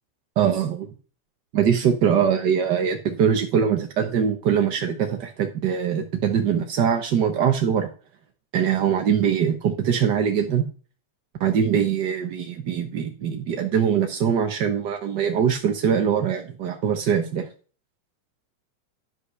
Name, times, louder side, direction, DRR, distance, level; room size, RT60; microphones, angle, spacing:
voice 1, 0.4-0.9 1.5-7.9 8.5-10.6 11.4-17.5, right 8 dB, 60° right, 4 dB, 1.1 m, -22 dB
11.5 x 5.4 x 6.2 m, 0.38 s
omnidirectional pair, 3.4 m